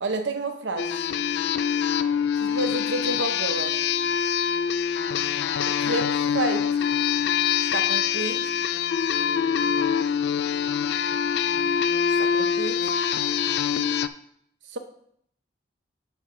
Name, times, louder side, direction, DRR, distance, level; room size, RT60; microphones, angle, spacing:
voice 1, 0.0-0.9 2.4-3.8 5.7-6.8 7.6-8.5 12.1-12.9 14.7-14.8, right 2 dB, 85° right, 6 dB, 0.9 m, -30 dB
sound 1, 0.8-14.1, left 8 dB, 65° left, 0.3 m, -24 dB
8.1 x 6.0 x 3.8 m, 0.69 s
head